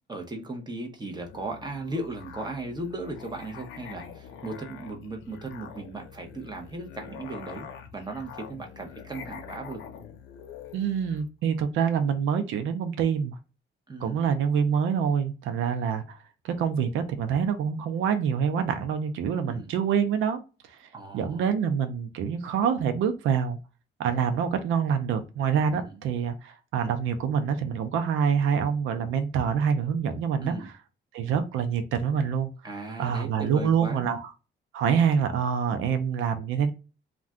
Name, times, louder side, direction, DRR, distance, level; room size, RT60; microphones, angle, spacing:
voice 1, 0.1-9.8 13.9-14.2 19.5-19.7 20.9-21.5 25.7-26.0 30.4-30.7 32.6-34.1, right 2 dB, 20° right, 3 dB, 0.8 m, -37 dB
Musical instrument, 1.1-11.3, left 7 dB, 90° left, 0.6 m, -45 dB
voice 2, 10.7-13.4 14.0-16.2 16.4-20.4 20.7-23.6 24.0-30.7 31.1-32.5 33.0-34.3 34.7-36.7, right 7 dB, 80° right, 8 dB, 0.5 m, -26 dB
2.4 x 2.2 x 3.5 m, 0.31 s
cardioid pair, 90°, 20 cm